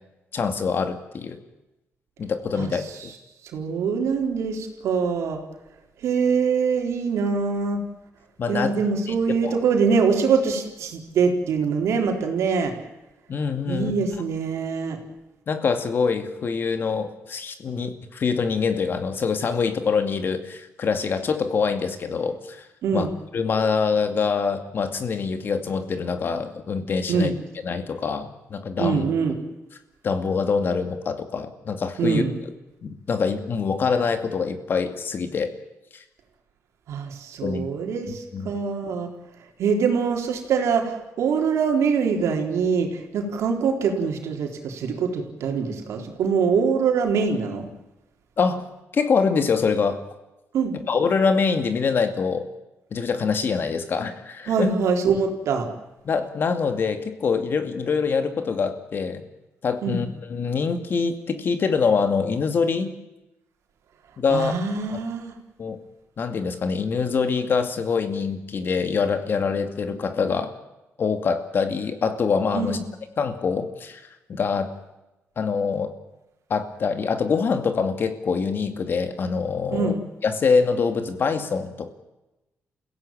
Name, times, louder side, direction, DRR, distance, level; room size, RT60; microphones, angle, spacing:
voice 1, 0.3-1.4 2.2-3.1 8.4-8.7 9.1-9.2 9.4-9.6 13.3-13.9 15.5-22.7 22.9-23.1 23.3-27.3 27.6-29.0 30.0-32.2 32.8-35.5 35.9-36.0 37.4-37.7 38.3-38.5 48.4-48.6 48.9-50.0 50.9-52.5 52.9-54.7 56.0-59.2 59.6-62.9 64.2-64.5 64.9-65.0 65.6-65.8 66.2-70.5 71.0-72.8 73.2-74.7 75.4-75.9 76.5-79.9 80.2-81.9, left 5 dB, 50° left, 8 dB, 2.3 m, -24 dB
voice 2, 3.5-5.4 6.0-7.8 8.5-12.7 13.7-15.0 22.8-23.1 27.1-27.3 28.8-29.4 32.0-32.3 36.9-39.1 39.6-47.7 50.5-50.7 54.5-55.7 59.8-60.0 64.3-65.3 72.5-72.8 79.7-80.0, right 5 dB, 85° right, 3 dB, 3.9 m, -24 dB
28.5 x 16.5 x 8.9 m, 1.0 s
cardioid pair, 135°, 5 cm